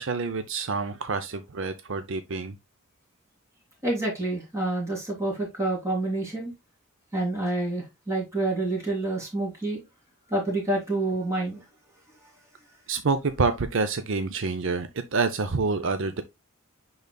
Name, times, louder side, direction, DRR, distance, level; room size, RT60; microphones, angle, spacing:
voice 1, 0.0-2.6 12.9-16.2, right 4 dB, 60° right, 0.6 m, -27 dB
voice 2, 3.8-6.5 7.1-9.8 10.3-11.6, right 2 dB, 15° right, 3.2 m, -28 dB
10.5 x 4.0 x 2.2 m
head